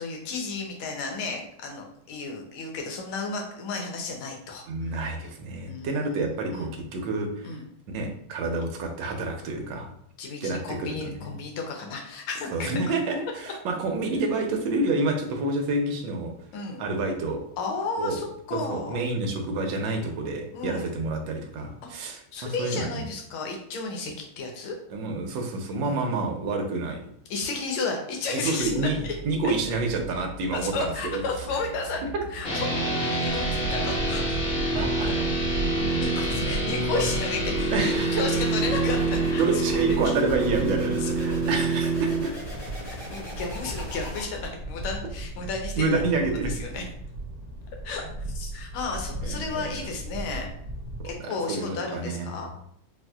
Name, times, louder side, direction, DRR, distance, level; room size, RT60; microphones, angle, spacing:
voice 1, 0.0-5.0 5.7-6.7 7.4-7.6 10.2-12.7 16.5-16.8 17.6-19.0 20.5-20.9 22.0-24.7 25.8-26.1 27.3-28.9 30.5-32.0 32.3-32.7 33.0-34.4 36.0-40.0 41.0-41.3 42.8-46.0 46.4-46.8 47.8-48.0 48.3-50.5 51.0-52.5, left 4 dB, 75° left, 1 dB, 1.5 m, -33 dB
voice 2, 4.7-7.6 7.9-9.9 10.4-10.6 11.0-11.3 12.5-16.3 16.8-17.4 18.0-18.2 18.5-23.0 24.9-27.1 28.3-31.2 34.7-35.1 36.3-36.7 37.7-38.2 39.4-42.3 45.8-46.5 49.2-49.9 51.0-52.5, right 3 dB, 70° right, 3 dB, 1.2 m, -28 dB
sound 1, 28.6-44.7, equal, 15° left, 1.0 m, -41 dB
sound 2, 32.4-42.2, right 2 dB, 60° left, 0.7 m, -27 dB
sound 3, 33.2-51.2, right 1 dB, 20° right, 0.6 m, -36 dB
4.2 x 2.5 x 2.3 m, 0.68 s
omnidirectional pair, 2.4 m